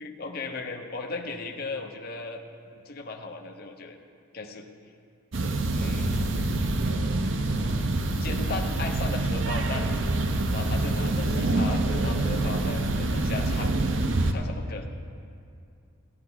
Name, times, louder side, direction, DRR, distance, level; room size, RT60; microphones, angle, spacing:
voice 1, 0.0-2.4 2.7-4.0 4.3-4.7 5.7-6.3 8.2-9.9 10.5-13.7 14.3-14.9, left 3 dB, 50° left, 3 dB, 0.9 m, -36 dB
sound 1, 5.3-14.3, right 2 dB, 70° right, 0.8 m, -26 dB
15.5 x 10.5 x 3.9 m, 2.4 s
head